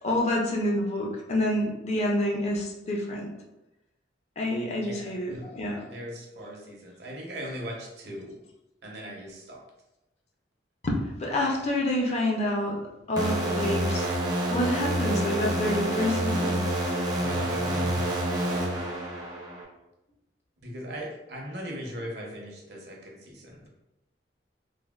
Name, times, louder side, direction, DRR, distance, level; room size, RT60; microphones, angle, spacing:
voice 1, 0.0-3.3 4.4-5.9 10.8-12.8 13.1-14.1 14.5-16.6, left 1 dB, 35° left, -1 dB, 0.4 m, -28 dB
voice 2, 4.8-5.5 5.8-8.4 8.8-9.6 17.1-18.8 20.6-23.7, equal, 65° right, -1 dB, 0.7 m, -39 dB
sound 1, 13.2-19.6, right 1 dB, 20° right, 0.4 m, -28 dB
3.3 x 2.2 x 2.2 m, 0.95 s
head